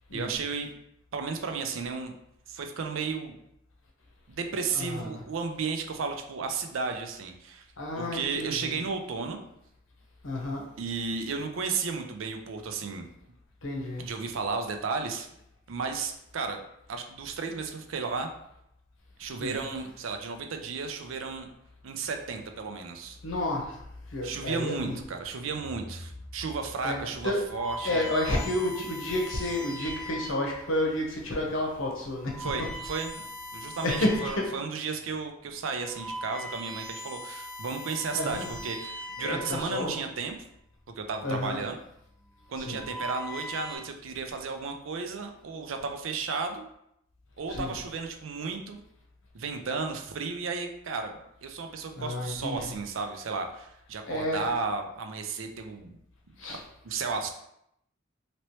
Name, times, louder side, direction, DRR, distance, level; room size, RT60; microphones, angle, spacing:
voice 1, 0.1-0.7 1.1-2.1 2.5-3.4 4.3-7.7 8.0-9.4 10.8-13.1 14.0-15.3 15.7-16.6 16.9-18.3 19.2-21.5 21.8-23.2 24.2-28.1 32.4-33.2 33.5-40.3 41.0-41.8 42.5-46.6 47.4-48.8 49.3-56.0 56.8-57.3, right 4 dB, 85° right, 5 dB, 0.5 m, -33 dB
voice 2, 4.7-5.1 7.8-8.8 10.2-10.6 13.6-14.0 19.4-19.5 23.2-23.8 24.1-25.0 26.8-27.4 27.8-32.3 33.8-34.4 38.1-38.5 39.2-40.0 41.2-41.6 42.6-42.8 47.5-47.7 52.0-52.7 54.1-54.5 56.4-56.6, left 1 dB, 85° left, 0 dB, 0.8 m, -30 dB
sound 1, 27.3-30.7 31.4-31.6 32.1-34.6 35.0-35.2 35.7-40.1 41.1-41.5 42.4-43.8, equal, 5° left, 0.5 m, -40 dB
3.0 x 2.9 x 3.0 m, 0.77 s
head